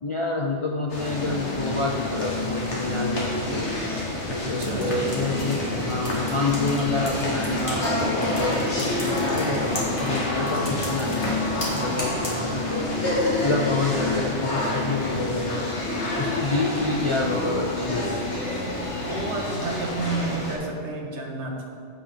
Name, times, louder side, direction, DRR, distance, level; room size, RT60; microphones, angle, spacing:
voice 1, 0.0-3.7 4.3-12.9 13.4-15.7 16.2-18.2, left 3 dB, 40° left, 0 dB, 0.4 m, -28 dB
sound 1, 0.9-20.5, left 1 dB, 70° left, 1.9 m, -28 dB
voice 2, 4.4-5.1 11.6-12.0 19.1-21.7, right 3 dB, 70° right, 1 dB, 1.5 m, -31 dB
sound 2, 4.6-12.4, equal, 25° left, 2.1 m, -33 dB
8.7 x 5.1 x 5.7 m, 2.4 s
omnidirectional pair, 1.2 m